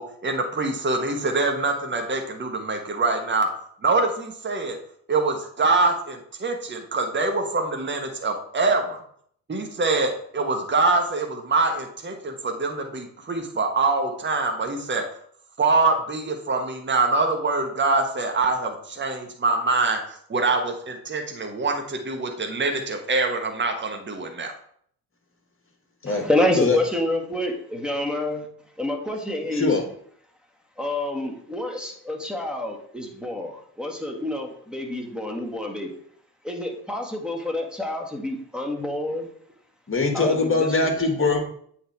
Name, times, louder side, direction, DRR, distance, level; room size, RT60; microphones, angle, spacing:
voice 1, 0.0-3.5 3.8-4.8 5.1-9.0 9.5-15.0 15.6-24.5, right 3 dB, 25° right, 4 dB, 1.3 m, -24 dB
voice 2, 26.1-28.5 28.8-29.8 30.8-35.9 36.4-39.3 40.1-40.9, left 1 dB, ahead, 3 dB, 1.9 m, -28 dB
voice 3, 29.5-29.9 39.9-41.4, left 3 dB, 25° left, 4 dB, 1.8 m, -22 dB
8.0 x 3.8 x 4.5 m, 0.62 s
hypercardioid pair, 50°, 47 cm